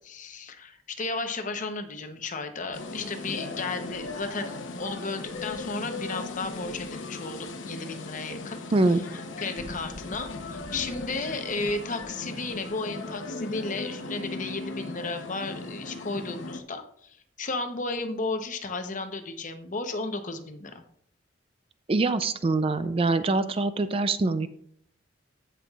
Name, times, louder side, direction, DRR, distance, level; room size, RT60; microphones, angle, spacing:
voice 1, 0.0-9.1 9.4-20.8, left 3 dB, 45° left, 7 dB, 0.8 m, -34 dB
sound 1, 2.7-16.6, left 2 dB, 85° left, 0.8 m, -38 dB
voice 2, 8.7-9.0 21.9-24.5, right 3 dB, 30° right, 12 dB, 0.4 m, -24 dB
15.5 x 5.6 x 2.4 m, 0.67 s
head